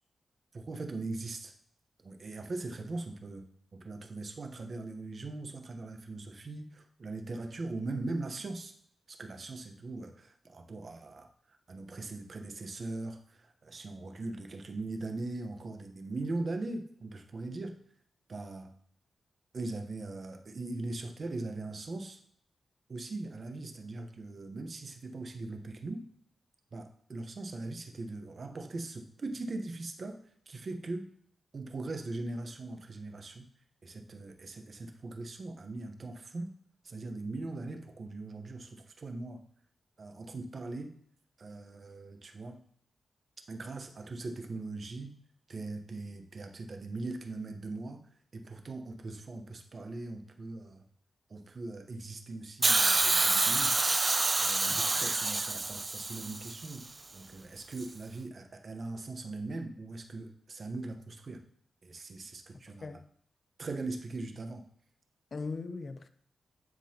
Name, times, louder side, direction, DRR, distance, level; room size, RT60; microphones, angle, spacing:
voice 1, 0.5-1.5 2.0-8.7 9.1-17.8 18.3-18.7 19.5-22.2 22.9-26.1 26.7-30.2 30.5-31.1 31.5-33.5 33.8-36.5 36.8-39.4 40.0-40.9 41.4-42.6 43.5-45.2 45.5-50.8 51.3-53.8 54.4-56.9 57.1-61.4 61.8-63.0 63.6-64.7, right 2 dB, 55° right, 1.0 m, -40 dB
Hiss, 52.6-56.8 57.8-57.9, right 3 dB, 35° right, 0.4 m, -27 dB
voice 2, 54.7-55.0 62.8-63.1 65.3-66.1, left 4 dB, 55° left, 0.5 m, -40 dB
10.0 x 3.8 x 2.9 m
cardioid pair, 65°, 0 cm